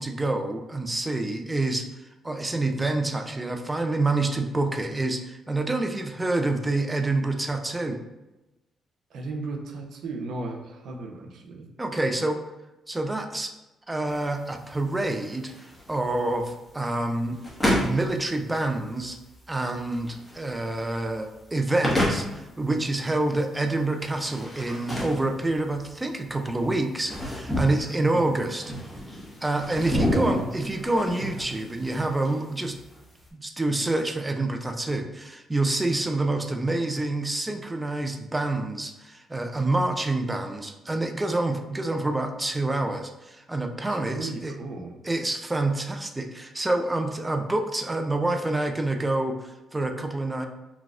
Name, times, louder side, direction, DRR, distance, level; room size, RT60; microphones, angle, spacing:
voice 1, 0.0-1.9 2.2-8.0 11.8-12.4 12.9-13.5 13.9-17.4 17.8-19.2 19.5-28.7 29.4-32.8 33.3-44.6 45.0-50.5, right 2 dB, 15° right, 5 dB, 0.4 m, -27 dB
voice 2, 9.1-11.7 28.0-28.4 29.9-30.4 43.9-45.0, right 3 dB, 70° right, 3 dB, 0.5 m, -35 dB
sound 1, 14.1-33.3, left 1 dB, 5° left, 0.9 m, -31 dB
4.0 x 2.3 x 2.4 m, 0.99 s
cardioid pair, 90°, 0 cm